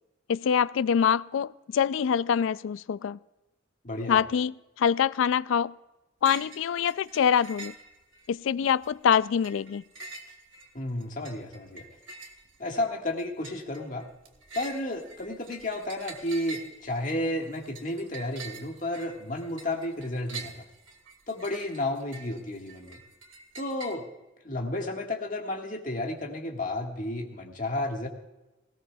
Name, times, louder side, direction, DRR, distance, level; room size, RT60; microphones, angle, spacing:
voice 1, 0.3-3.2 4.1-5.7 6.2-7.7 8.3-9.8, left 7 dB, 75° left, 19 dB, 0.3 m, -25 dB
voice 2, 3.8-4.2 10.7-11.9 12.6-14.1 14.5-20.7 21.3-23.0 23.5-24.1 24.4-28.1, left 1 dB, 40° left, 2 dB, 1.7 m, -32 dB
sound 1, 6.2-6.6 6.9-8.3 8.7-23.9, right 4 dB, 75° right, 1.8 m, -46 dB
18.5 x 17.0 x 2.3 m, 1.0 s
head